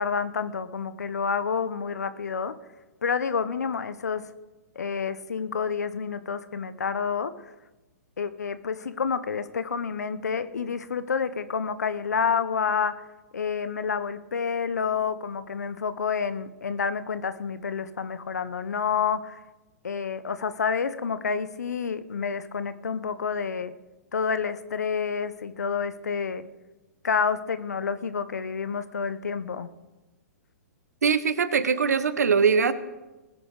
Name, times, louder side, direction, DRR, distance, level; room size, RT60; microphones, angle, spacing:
voice 1, 0.0-2.5 3.0-4.2 4.8-7.5 8.2-13.0 13.3-19.4 19.8-23.7 24.1-26.4 27.0-29.7, left 6 dB, 80° left, 13 dB, 0.9 m, -29 dB
voice 2, 31.0-32.7, right 6 dB, 75° right, 14 dB, 1.0 m, -22 dB
19.5 x 10.0 x 3.9 m, 1.1 s
figure-of-eight pair, 115°, 9 cm